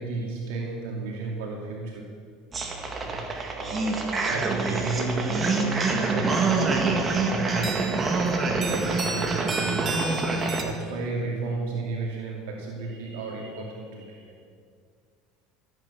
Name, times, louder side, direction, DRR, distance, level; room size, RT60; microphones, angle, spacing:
voice 1, 0.0-2.2 3.0-3.3 3.5-7.8 8.4-10.1 10.5-14.4, right 3 dB, 80° right, -1 dB, 2.5 m, -33 dB
sound 1, 2.5-10.6, right 3 dB, 25° right, 1.9 m, -26 dB
14.0 x 9.2 x 7.0 m, 2.1 s
supercardioid pair, 100°, 0 cm